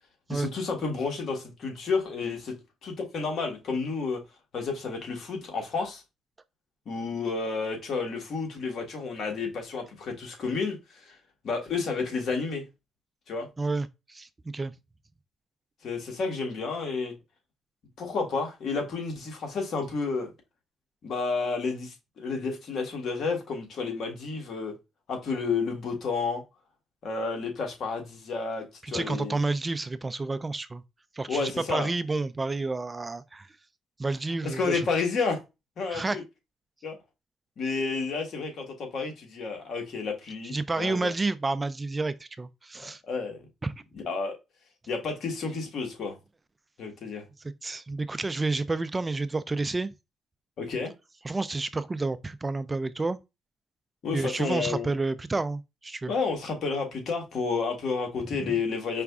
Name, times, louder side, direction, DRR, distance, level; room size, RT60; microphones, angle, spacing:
voice 1, 0.3-2.5 2.8-4.2 4.5-6.0 6.8-11.1 11.4-12.6 13.3-13.5 15.8-17.1 18.0-20.3 21.0-24.7 25.1-26.4 27.0-29.4 31.3-31.9 34.4-35.4 35.8-36.2 36.8-36.9 37.6-41.1 42.8-43.4 43.9-44.3 44.9-46.2 46.8-47.2 50.6-50.9 54.0-54.9 56.1-59.0, left 4 dB, 60° left, 1.6 m, -31 dB
voice 2, 13.6-14.3 14.5-14.7 28.8-30.8 31.2-33.5 34.0-34.8 35.9-36.2 40.5-43.0 43.6-43.7 47.6-49.9 51.2-53.2 54.1-56.1 58.4-58.5, right 3 dB, 25° right, 0.4 m, -30 dB
4.9 x 2.2 x 3.6 m
cardioid pair, 90°, 0 cm